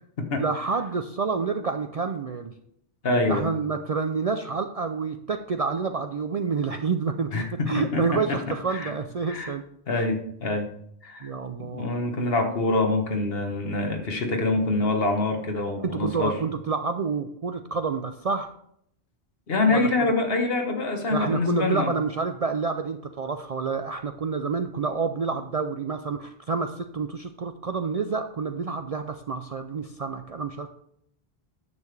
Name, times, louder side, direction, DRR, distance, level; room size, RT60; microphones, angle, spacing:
voice 1, 0.4-2.5 3.3-9.7 11.2-11.9 15.8-18.5 19.7-20.2 21.1-30.7, right 5 dB, 55° right, 7 dB, 0.4 m, -28 dB
voice 2, 3.0-3.5 7.3-8.4 8.7-8.9 9.3-9.5 9.9-10.7 11.0-11.3 11.6-16.4 19.5-21.9, left 2 dB, 65° left, 4 dB, 1.4 m, -25 dB
9.7 x 6.8 x 3.3 m, 0.71 s
omnidirectional pair, 1.1 m